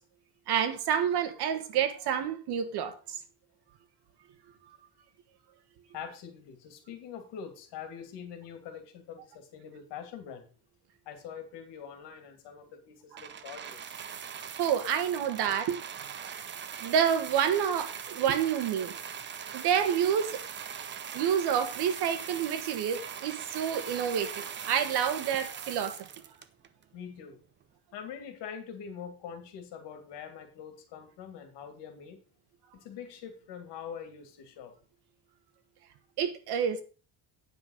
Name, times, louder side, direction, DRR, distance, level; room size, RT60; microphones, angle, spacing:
voice 1, 0.5-3.2 14.6-15.8 16.1-16.2 16.8-18.9 19.5-20.4 21.1-26.1 36.2-36.8, right 8 dB, 70° right, 1.7 m, -28 dB
voice 2, 5.9-10.5 11.1-14.0 26.9-27.4 27.9-32.2 32.8-34.7, left 7 dB, 80° left, 2.5 m, -44 dB
sound 1, 13.2-26.8 27.6-27.7, right 8 dB, 25° right, 0.6 m, -41 dB
9.6 x 5.5 x 6.4 m
cardioid pair, 170°, 41 cm